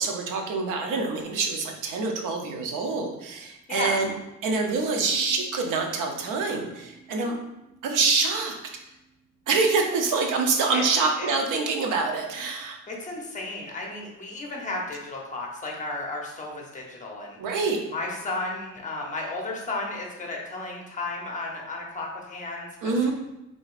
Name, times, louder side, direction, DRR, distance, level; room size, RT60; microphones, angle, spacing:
voice 1, 0.0-4.1 4.4-7.4 7.8-8.6 9.5-12.8 17.4-17.8 22.8-23.1, right 4 dB, 85° right, 3 dB, 0.8 m, -26 dB
sound 1, 5.1-10.5, right 2 dB, 60° left, 0.4 m, -52 dB
voice 2, 12.9-17.4 17.9-23.1, left 2 dB, 25° left, -1 dB, 0.7 m, -33 dB
4.9 x 3.8 x 2.5 m, 0.94 s
cardioid pair, 165°, 31 cm